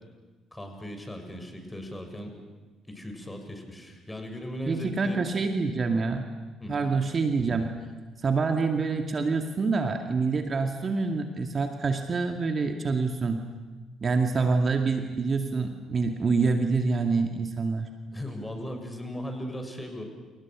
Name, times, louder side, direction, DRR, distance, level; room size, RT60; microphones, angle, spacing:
voice 1, 0.5-2.4 2.9-5.2 6.6-6.9 18.1-20.0, equal, 15° left, 5 dB, 7.0 m, -38 dB
voice 2, 4.7-6.3 6.7-7.7 8.2-13.4 14.0-17.9, right 4 dB, 35° right, 5 dB, 2.3 m, -26 dB
29.5 x 29.0 x 6.4 m, 1.3 s
figure-of-eight pair, 50°, 0 cm